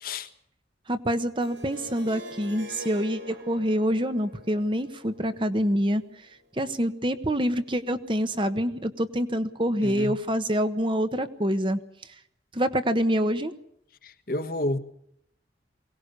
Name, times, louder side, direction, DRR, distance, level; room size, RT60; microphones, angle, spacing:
voice 1, 0.9-6.0 6.6-11.8 12.5-13.5, equal, 25° right, 1.2 m, -26 dB
Harp, 1.4-6.4, left 1 dB, 85° right, 7.0 m, -44 dB
voice 2, 9.8-10.1 14.0-14.8, left 1 dB, 50° left, 1.4 m, -30 dB
23.0 x 18.5 x 6.8 m
head